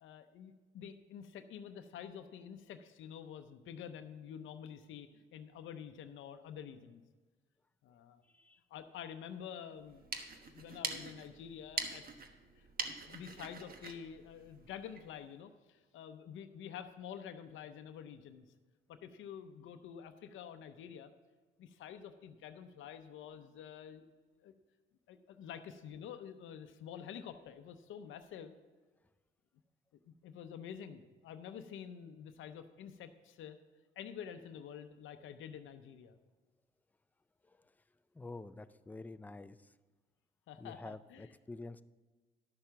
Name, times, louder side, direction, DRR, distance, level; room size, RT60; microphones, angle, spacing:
voice 1, 0.0-7.0 7.8-8.2 8.7-10.0 10.5-12.0 12.6-18.5 18.9-21.1 21.6-24.0 24.4-24.5 25.1-28.6 30.1-33.6 34.0-36.2 40.5-41.3, left 8 dB, 80° left, 8 dB, 0.7 m, -48 dB
sound 1, 9.8-15.1, right 4 dB, 45° right, 1.2 m, -44 dB
voice 2, 38.2-39.6 40.6-41.8, left 2 dB, 10° left, 12 dB, 0.4 m, -47 dB
11.5 x 6.7 x 5.8 m, 1.3 s
cardioid pair, 90°, 20 cm